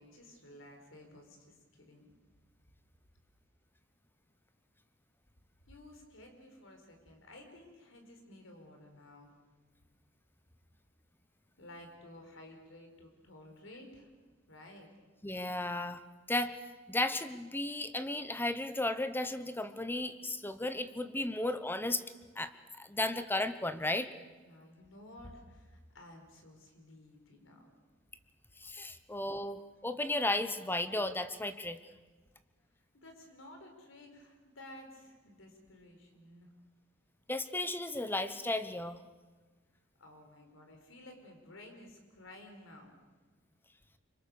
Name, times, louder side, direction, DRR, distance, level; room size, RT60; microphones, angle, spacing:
voice 1, 0.0-2.1 5.6-9.3 11.6-14.1 14.5-14.9 24.4-27.7 33.0-36.5 40.0-43.0, left 1 dB, 80° left, 4 dB, 4.7 m, -54 dB
voice 2, 15.2-16.0 16.3-16.5 16.9-22.0 22.4-24.1 28.6-31.8 37.3-39.0, left 2 dB, 10° left, 11 dB, 1.0 m, -34 dB
26.5 x 24.0 x 7.0 m, 1.3 s
head